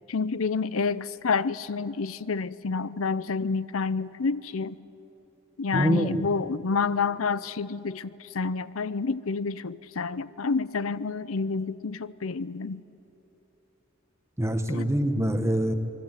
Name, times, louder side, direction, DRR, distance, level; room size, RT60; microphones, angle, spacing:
voice 1, 0.1-4.8 5.6-12.8 14.7-14.9, left 4 dB, 80° left, 17 dB, 0.6 m, -29 dB
voice 2, 5.7-6.2 14.4-15.7, right 1 dB, 15° right, 7 dB, 1.5 m, -25 dB
29.5 x 21.0 x 9.2 m, 2.9 s
head